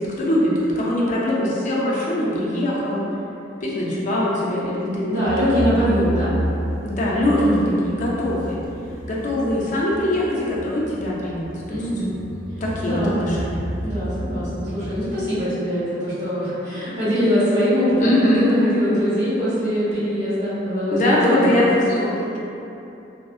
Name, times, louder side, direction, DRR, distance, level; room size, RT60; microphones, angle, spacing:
voice 1, 0.0-3.1 3.6-5.2 6.8-7.4 7.8-8.6 9.1-11.8 12.6-13.7 18.0-18.5 20.9-22.4, left 1 dB, 40° left, -5 dB, 0.4 m, -22 dB
voice 2, 5.0-6.3 7.3-7.8 11.7-12.1 12.8-13.2 13.8-21.9, equal, 40° right, -14 dB, 1.4 m, -23 dB
sound 1, 5.2-15.0, equal, 90° right, 0.4 m, -31 dB
2.6 x 2.0 x 2.3 m, 2.8 s
head